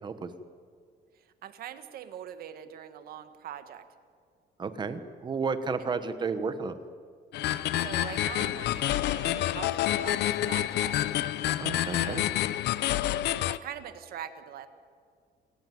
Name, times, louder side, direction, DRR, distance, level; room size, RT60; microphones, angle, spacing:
voice 1, 1.1-3.8 5.8-6.0 7.8-11.0 11.9-12.4 13.5-14.7, right 10 dB, 55° right, 9 dB, 1.6 m, -43 dB
voice 2, 4.6-6.7 11.6-12.3, right 5 dB, 25° right, 10 dB, 1.2 m, -32 dB
sound 1, 7.3-13.6, left 13 dB, 65° left, 0.7 m, -28 dB
27.5 x 15.5 x 9.4 m, 2.1 s
cardioid pair, 180°, 18 cm